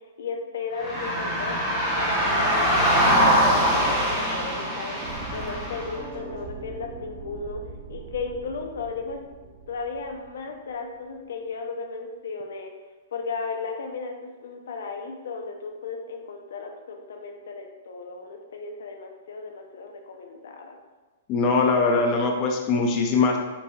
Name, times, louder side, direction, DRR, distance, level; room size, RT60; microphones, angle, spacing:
voice 1, 0.2-5.0 5.3-7.6 7.9-9.2 9.7-12.7 13.1-20.8, left 4 dB, 80° left, 3 dB, 0.7 m, -35 dB
sound 1, 0.8-6.0, equal, 10° right, 1.0 m, -23 dB
sound 2, 5.0-11.0, right 3 dB, 40° right, 1.1 m, -41 dB
voice 2, 21.3-23.4, left 4 dB, 30° left, 1 dB, 0.6 m, -21 dB
5.5 x 4.0 x 2.4 m, 1.3 s
hypercardioid pair, 155°, 0 cm